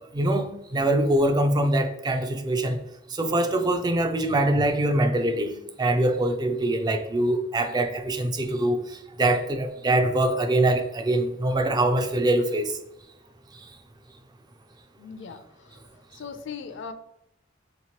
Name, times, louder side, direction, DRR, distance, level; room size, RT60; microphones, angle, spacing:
voice 1, 0.1-2.8 3.1-12.8, right 1 dB, 20° right, 7 dB, 0.3 m, -24 dB
voice 2, 15.0-15.8 16.1-16.9, left 6 dB, 65° left, 9 dB, 0.4 m, -39 dB
4.3 x 2.9 x 2.8 m, 0.83 s
head